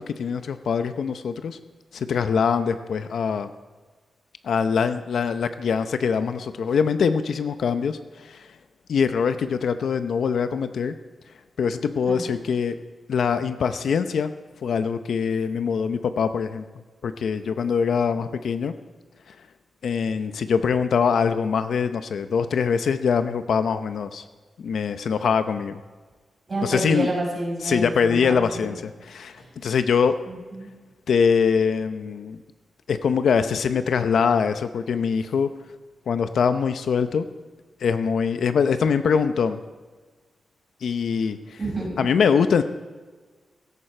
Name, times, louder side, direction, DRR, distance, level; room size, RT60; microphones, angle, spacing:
voice 1, 0.0-1.6 1.9-3.5 4.4-8.5 8.9-10.9 11.6-12.8 13.1-14.3 14.6-16.7 17.0-18.8 19.3-19.4 19.8-24.2 24.6-25.8 26.6-27.1 27.6-30.2 31.1-32.4 32.9-35.5 36.1-37.3 37.8-39.6 40.8-41.6 42.0-42.6, left 6 dB, 70° left, 10 dB, 0.7 m, -23 dB
voice 2, 26.5-28.8 29.4-29.5 30.2-30.7 41.6-42.1, right 2 dB, 25° right, -3 dB, 5.4 m, -29 dB
17.0 x 14.5 x 4.4 m, 1.4 s
wide cardioid pair, 175°, 0 cm